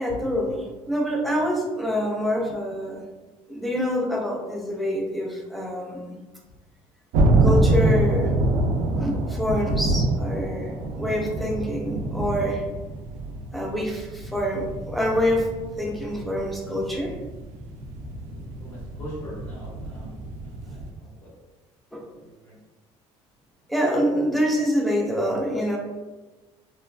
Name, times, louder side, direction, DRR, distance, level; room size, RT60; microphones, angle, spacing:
voice 1, 0.0-3.1 3.5-6.2 7.4-8.3 9.0-10.7 11.0-12.6 13.5-15.5 15.8-17.1 21.9-22.1 23.7-25.8, equal, ahead, -1 dB, 0.3 m, -26 dB
sound 1, 7.1-20.9, right 2 dB, 85° right, 0.4 m, -26 dB
voice 2, 18.6-20.1 20.4-21.3 22.2-22.6, equal, 45° left, -12 dB, 1.0 m, -42 dB
2.9 x 2.2 x 2.4 m, 1.2 s
cardioid pair, 165°, 11 cm